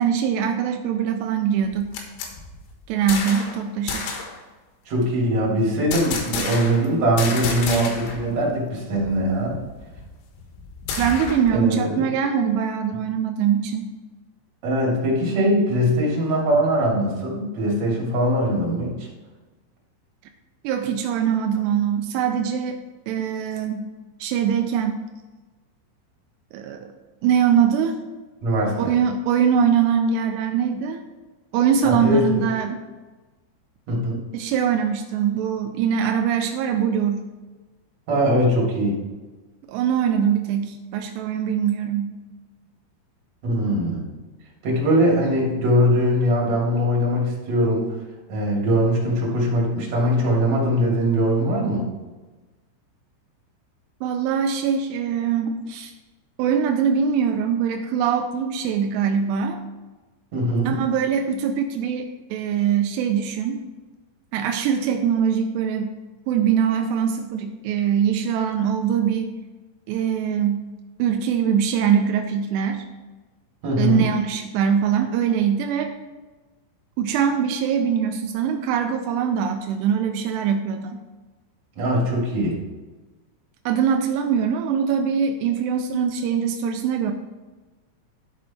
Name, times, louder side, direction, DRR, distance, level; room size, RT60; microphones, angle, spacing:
voice 1, 0.0-2.0 2.9-4.1 11.0-13.9 20.6-22.8 23.1-23.9 24.2-25.0 26.5-26.9 27.2-28.0 28.8-31.0 31.5-32.8 34.3-37.2 39.7-42.1 54.0-55.9 56.4-59.6 60.7-62.0 62.3-63.6 64.3-66.0 66.3-69.3 69.9-70.6 71.0-72.8 73.8-75.9 77.0-81.0 83.7-87.1, right 8 dB, 90° right, 4 dB, 2.4 m, -22 dB
sound 1, 1.6-3.6 3.9-4.4 5.9-6.9 7.2-8.2 8.5-8.6 9.0-11.6, left 4 dB, 80° left, 3.7 m, -30 dB
voice 2, 4.9-9.6 11.5-11.9 14.6-19.1 28.4-28.9 31.8-32.4 33.9-34.2 38.1-39.0 43.4-44.0 44.6-47.9 48.3-51.8 60.3-60.7 73.6-74.1 81.8-82.5, equal, 40° right, -4 dB, 3.4 m, -21 dB
12.5 x 5.2 x 4.3 m, 1.2 s
omnidirectional pair, 5.6 m